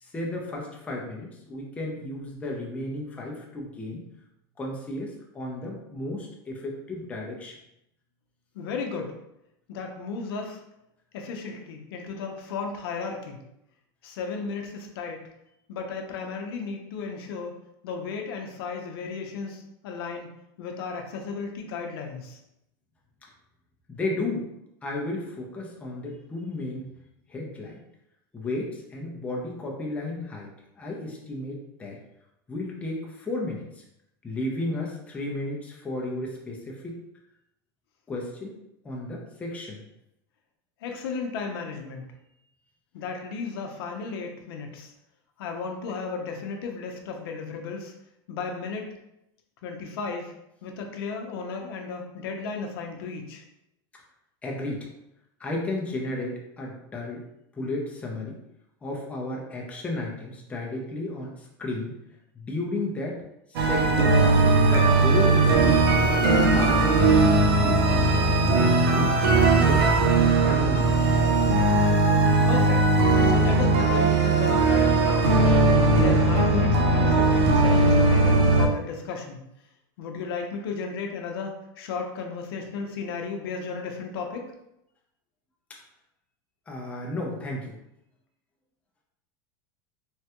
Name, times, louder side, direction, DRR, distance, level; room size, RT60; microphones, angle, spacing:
voice 1, 0.0-4.0 4.6-7.5 23.9-24.5 24.8-26.9 27.3-27.8 28.3-30.5 30.8-32.0 32.5-33.8 34.2-37.0 38.1-38.6 38.8-39.8 54.4-54.9 55.4-57.2 57.6-58.3 58.8-61.9 62.4-63.2 63.5-64.0 64.6-65.8 66.3-66.9 67.5-68.5 68.9-69.9 70.4-71.0 86.7-87.8, left 2 dB, 10° left, -2 dB, 0.5 m, -33 dB
voice 2, 8.5-9.1 9.7-10.6 11.1-13.4 14.0-15.2 15.7-17.6 17.8-20.3 20.6-22.4 40.8-42.0 42.9-44.9 45.4-47.9 48.3-48.9 49.6-50.3 50.6-53.4 72.5-72.9 73.3-75.3 75.8-79.4 80.0-84.5, left 4 dB, 75° left, 2 dB, 0.6 m, -34 dB
sound 1, 63.6-78.7, right 2 dB, 90° right, 0.7 m, -19 dB
3.2 x 2.2 x 2.8 m, 0.83 s
supercardioid pair, 145°, 13 cm